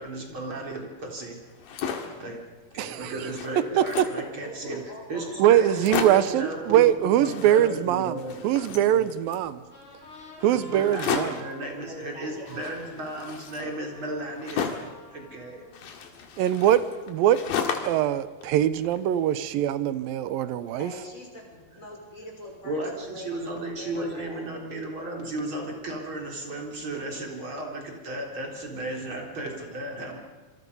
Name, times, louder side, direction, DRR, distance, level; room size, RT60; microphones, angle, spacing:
voice 1, 0.0-1.4 2.2-2.4 2.7-9.1 10.7-14.8 15.1-15.6 22.6-30.2, right 1 dB, 35° right, 0 dB, 4.4 m, -35 dB
sound 1, 1.5-2.2 2.7-2.8 3.0-4.3 4.9-5.0 5.2-5.3 5.6-6.4 7.1-9.5 10.9-11.5 12.5-15.0 15.7-18.1 18.4-19.3, left 7 dB, 80° left, 3.6 m, -34 dB
voice 2, 2.8-3.1 3.8-3.9 5.4-9.6 10.4-11.4 16.4-17.4 17.8-20.9, right 11 dB, 85° right, 13 dB, 2.7 m, -22 dB
voice 3, 4.2-6.1 11.8-12.6 20.8-24.5, left 1 dB, 20° left, 0 dB, 5.6 m, -43 dB
sound 2, 9.6-16.4, left 2 dB, 40° left, 4.3 m, -49 dB
27.0 x 25.5 x 5.5 m, 1.3 s
omnidirectional pair, 4.0 m